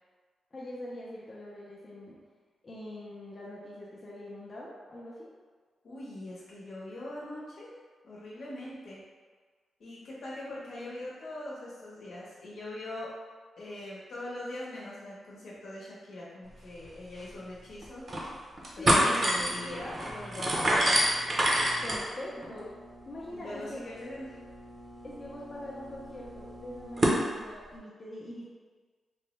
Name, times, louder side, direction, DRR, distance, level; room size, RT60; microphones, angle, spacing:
voice 1, 0.5-2.2 2.6-5.3 10.7-11.1 18.6-19.9 21.8-22.8 23.1-23.8 25.0-28.4, left 1 dB, 35° left, -7 dB, 0.5 m, -43 dB
voice 2, 5.8-7.7 8.0-9.0 9.8-13.1 13.6-18.1 18.7-21.0 23.3-24.4, left 1 dB, 70° left, -7 dB, 0.9 m, -41 dB
sound 1, 16.8-16.9 17.2-17.3 17.8-18.3 18.6-27.2, right 1 dB, 40° right, 0.6 m, -29 dB
3.1 x 2.1 x 3.1 m, 1.5 s
cardioid pair, 110°, 0 cm